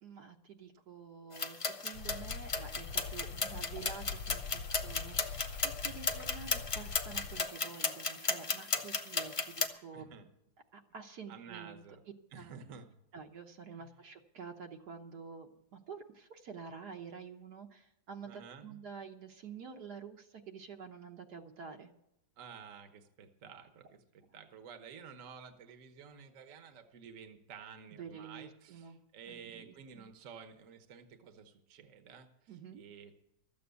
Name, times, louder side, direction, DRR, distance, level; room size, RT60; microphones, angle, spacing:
voice 1, 0.0-10.2 10.7-11.8 12.4-12.5 13.1-21.9 28.0-29.0 29.3-29.7 30.0-30.1 32.5-32.8, right 6 dB, 65° right, 4 dB, 1.5 m, -49 dB
sound 1, 1.3-9.7, left 4 dB, 55° left, 0.3 m, -35 dB
sound 2, 1.9-7.4, left 5 dB, 75° left, 1.2 m, -44 dB
voice 2, 9.9-10.3 11.3-12.0 12.3-13.0 13.7-13.9 18.3-18.7 22.4-33.1, right 6 dB, 50° right, 8 dB, 1.3 m, -52 dB
13.5 x 7.8 x 8.2 m, 0.85 s
omnidirectional pair, 1.9 m